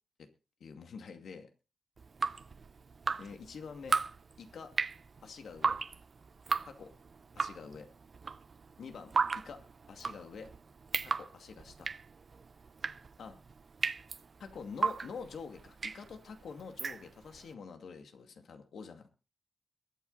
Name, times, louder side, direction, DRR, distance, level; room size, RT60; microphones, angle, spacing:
voice 1, 0.6-1.5 3.2-4.0 4.4-4.7 5.2-5.8 6.7-6.9 7.3-7.9 8.8-9.6 9.9-10.5 11.0-11.9 13.2-13.4 14.4-19.1, left 5 dB, 85° left, 6 dB, 2.4 m, -46 dB
Drip, 2.0-17.4, right 4 dB, 50° right, 0.6 m, -36 dB
22.0 x 8.5 x 4.2 m, 0.33 s
cardioid pair, 80°, 0 cm